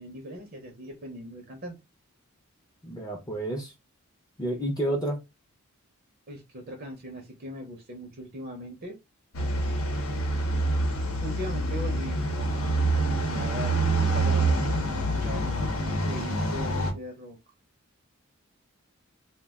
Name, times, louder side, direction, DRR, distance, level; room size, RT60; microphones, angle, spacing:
voice 1, 0.0-1.8 6.3-9.0 11.2-13.7 14.0-17.4, equal, 40° right, 0.6 m, -40 dB
voice 2, 2.8-3.7 4.4-5.2, right 1 dB, 15° left, 0.5 m, -30 dB
sound 1, 9.3-16.9, right 2 dB, 80° left, 0.8 m, -26 dB
2.3 x 2.1 x 3.4 m
head